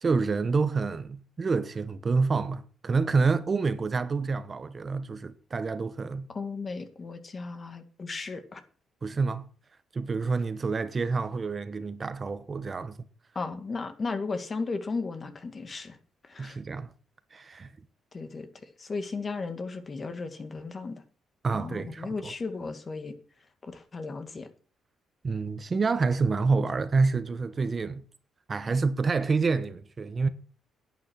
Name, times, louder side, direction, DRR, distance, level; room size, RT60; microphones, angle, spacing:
voice 1, 0.0-6.3 9.0-9.5 9.9-13.0 16.4-16.9 17.3-17.7 21.4-22.3 25.2-28.0 28.5-30.3, right 4 dB, 35° right, 1.0 m, -28 dB
voice 2, 6.3-8.6 13.4-16.0 16.2-16.6 18.1-18.5 18.8-21.0 21.5-23.2 23.6-24.5, left 4 dB, 35° left, 2.0 m, -35 dB
10.5 x 8.5 x 6.4 m
cardioid pair, 90°, 0 cm